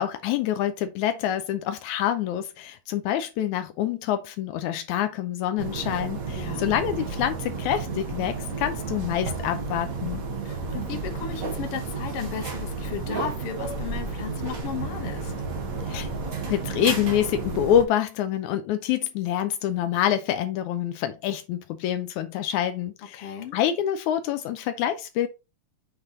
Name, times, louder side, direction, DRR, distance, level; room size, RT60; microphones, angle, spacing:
voice 1, 0.0-10.2 15.9-16.1 16.5-25.3, left 10 dB, 85° left, 2.0 m, -26 dB
sound 1, 5.6-17.8, right 4 dB, 40° right, 1.3 m, -32 dB
voice 2, 6.3-6.9 10.5-15.3 23.1-23.6, left 8 dB, 60° left, 1.8 m, -35 dB
7.4 x 3.4 x 3.9 m
omnidirectional pair, 3.4 m